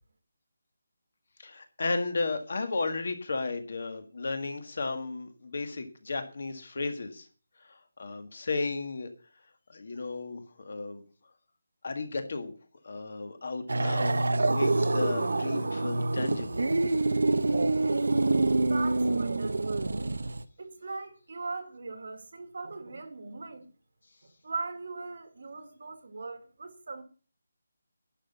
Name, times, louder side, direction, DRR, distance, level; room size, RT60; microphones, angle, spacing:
voice 1, 1.4-7.3 7.6-9.1 9.7-11.0 11.8-12.5 12.8-16.6, left 3 dB, 45° left, 1.8 m, -34 dB
sound 1, 13.7-20.4, right 2 dB, 75° right, 1.0 m, -26 dB
voice 2, 18.6-19.9 20.6-23.7 24.4-27.0, right 3 dB, 45° right, 1.7 m, -39 dB
11.5 x 5.8 x 8.2 m
hypercardioid pair, 180°, 0 cm